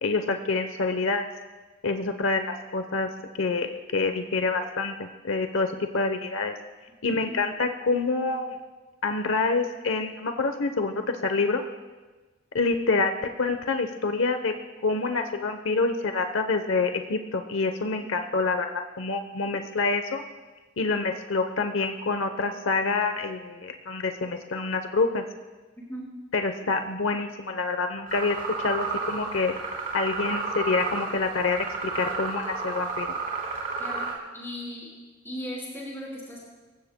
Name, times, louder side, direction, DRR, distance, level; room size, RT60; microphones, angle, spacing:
voice 1, 0.0-1.3 1.8-2.4 2.7-3.1 3.4-6.5 7.0-8.6 9.0-11.6 12.5-14.5 14.8-18.7 19.0-20.2 20.8-25.2 26.3-29.5 29.9-31.6 31.9-33.1, left 3 dB, 85° left, 6 dB, 0.9 m, -27 dB
voice 2, 25.8-26.1 33.8-34.1 34.3-34.9 35.2-36.4, equal, 10° left, -5 dB, 4.7 m, -37 dB
sound 1, 28.1-34.1, right 4 dB, 45° right, 3.5 m, -32 dB
26.5 x 15.5 x 2.2 m, 1.3 s
head